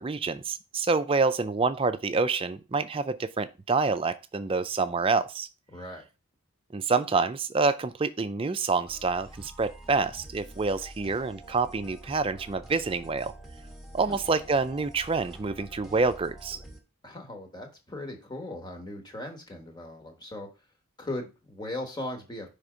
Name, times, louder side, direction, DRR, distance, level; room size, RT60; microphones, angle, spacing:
voice 1, 0.0-5.5 6.7-13.3 13.9-16.6, right 4 dB, 25° right, 0.4 m, -27 dB
voice 2, 5.7-6.0 14.1-14.2 17.0-20.5 21.0-22.5, left 1 dB, 20° left, 1.2 m, -38 dB
sound 1, 8.9-16.8, right 1 dB, ahead, 1.0 m, -47 dB
5.6 x 3.5 x 4.9 m
head